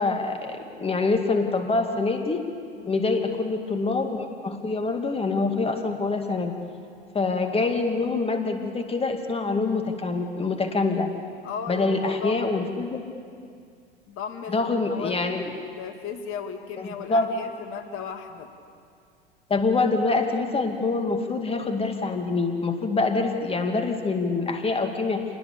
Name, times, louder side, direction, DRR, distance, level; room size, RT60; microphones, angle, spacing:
voice 1, 0.0-2.4 2.9-6.5 7.1-11.1 11.7-13.0 14.5-15.5 16.8-17.3 19.5-25.2, left 3 dB, 20° left, 5 dB, 2.5 m, -25 dB
voice 2, 11.4-12.9 14.1-18.5, left 6 dB, 40° left, 6 dB, 2.6 m, -36 dB
27.0 x 20.5 x 7.0 m, 2.3 s
hypercardioid pair, 90°, 31 cm